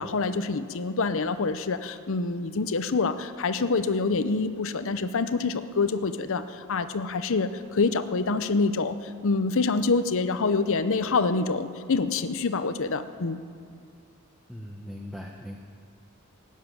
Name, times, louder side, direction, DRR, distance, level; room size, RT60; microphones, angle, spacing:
voice 1, 0.0-9.0 9.2-13.4, left 4 dB, 65° left, 11 dB, 0.7 m, -26 dB
voice 2, 14.5-15.6, equal, ahead, 0 dB, 0.9 m, -39 dB
18.5 x 7.4 x 9.0 m, 2.3 s
head